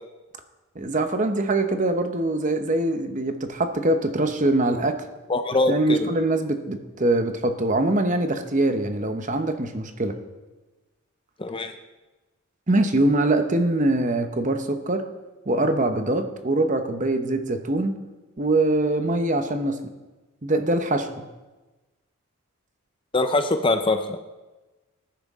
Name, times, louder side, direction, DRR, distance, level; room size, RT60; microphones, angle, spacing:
voice 1, 0.7-5.0 5.7-10.2 12.7-15.0 15.5-18.0 18.4-19.8 20.4-21.2, right 2 dB, 35° right, 7 dB, 0.8 m, -23 dB
voice 2, 5.3-6.1 11.4-11.7 23.1-24.2, left 2 dB, 25° left, 8 dB, 0.5 m, -23 dB
19.0 x 10.0 x 3.6 m, 1.2 s
head